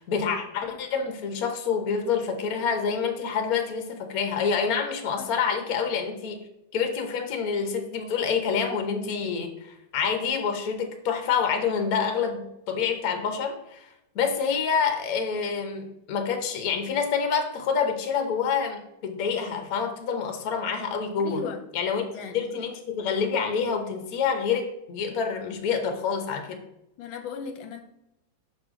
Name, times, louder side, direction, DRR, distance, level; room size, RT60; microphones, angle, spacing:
voice 1, 0.0-6.4 6.7-21.4 21.7-22.1 22.3-26.6, left 6 dB, 50° left, 5 dB, 1.3 m, -27 dB
voice 2, 21.2-21.6 22.1-22.6 27.0-27.8, left 5 dB, 75° left, 6 dB, 1.5 m, -36 dB
6.6 x 5.8 x 3.7 m, 0.84 s
omnidirectional pair, 2.3 m